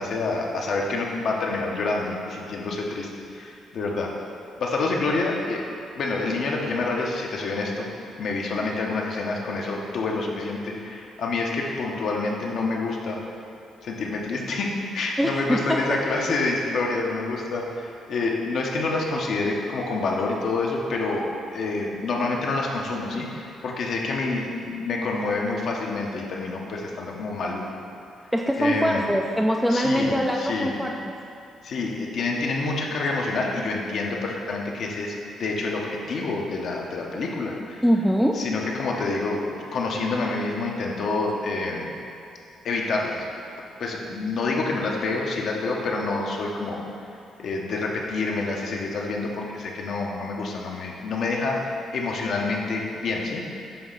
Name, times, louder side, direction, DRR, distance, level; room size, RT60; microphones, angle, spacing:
voice 1, 0.0-4.1 4.6-5.7 6.0-7.9 8.2-13.2 13.8-27.6 28.6-29.1 29.7-30.7 31.6-37.8 38.3-41.9 42.6-43.3 43.8-46.8 47.4-53.8, left 3 dB, 65° left, -1 dB, 0.9 m, -27 dB
voice 2, 15.2-15.8 28.3-31.1 37.8-38.4, equal, ahead, 0 dB, 0.4 m, -23 dB
6.9 x 2.9 x 5.5 m, 2.8 s
cardioid pair, 90°, 0 cm